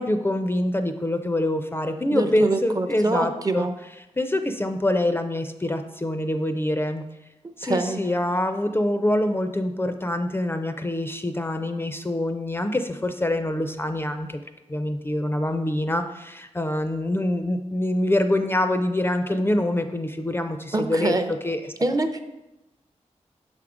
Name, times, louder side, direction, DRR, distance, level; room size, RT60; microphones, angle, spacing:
voice 1, 0.0-3.7 4.2-7.0 7.6-14.4 14.7-21.1 21.4-21.6, left 1 dB, 20° left, 7 dB, 0.4 m, -25 dB
voice 2, 2.1-3.8 7.6-8.1 20.7-21.3 21.8-22.2, right 2 dB, 30° right, 8 dB, 0.5 m, -25 dB
6.3 x 3.6 x 4.9 m, 0.97 s
wide cardioid pair, 85°, 12 cm